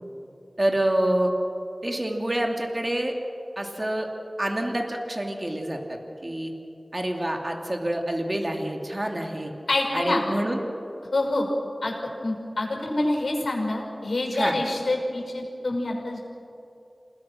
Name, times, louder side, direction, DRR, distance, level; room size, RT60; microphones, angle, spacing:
voice 1, 0.6-1.3 1.8-3.1 3.6-4.1 4.4-6.5 6.9-9.5 9.9-10.6 14.3-14.6, right 1 dB, 35° right, 2 dB, 2.6 m, -27 dB
voice 2, 9.7-10.2 11.1-11.5 11.8-11.9 12.2-16.2, left 2 dB, 85° left, 0 dB, 5.8 m, -26 dB
28.0 x 19.5 x 6.0 m, 2.7 s
wide cardioid pair, 45°, 0 cm